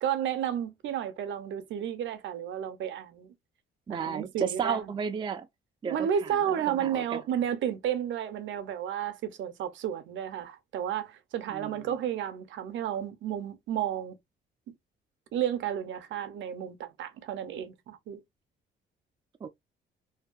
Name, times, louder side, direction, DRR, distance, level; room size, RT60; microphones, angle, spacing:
voice 1, 0.0-3.3 3.9-4.9 5.8-14.2 15.3-18.2, right 9 dB, 70° right, 0.6 m, -32 dB
voice 2, 3.9-5.5 5.8-7.2 11.5-12.0 19.4-19.5, right 6 dB, 25° right, 0.4 m, -33 dB
2.6 x 2.3 x 2.2 m
cardioid pair, 90°, 20 cm